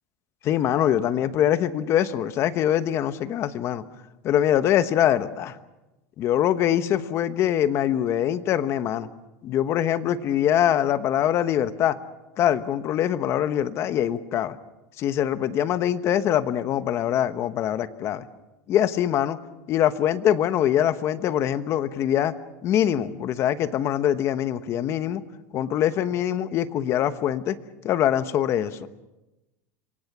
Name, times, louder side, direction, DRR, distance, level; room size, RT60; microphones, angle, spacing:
voice 1, 0.4-3.8 4.2-5.6 6.2-9.1 9.4-12.0 12.4-14.6 15.0-18.3 18.7-19.4 19.7-22.3 22.6-25.2 25.5-27.6 27.8-28.9, left 10 dB, 35° left, 13 dB, 1.0 m, -23 dB
27.5 x 23.5 x 6.1 m, 1.0 s
supercardioid pair, 160°, 8 cm